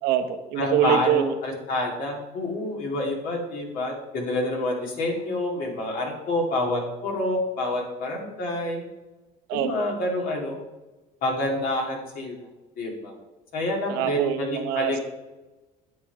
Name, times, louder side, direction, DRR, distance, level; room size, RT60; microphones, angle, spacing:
voice 1, 0.0-1.3 9.5-9.9 13.9-15.1, right 11 dB, 85° right, 6 dB, 1.1 m, -25 dB
voice 2, 0.6-8.8 9.5-10.6 11.2-12.4 12.8-13.1 13.5-15.1, left 1 dB, 65° left, 0 dB, 2.6 m, -28 dB
9.4 x 7.6 x 4.7 m, 1.1 s
cardioid pair, 130°, 16 cm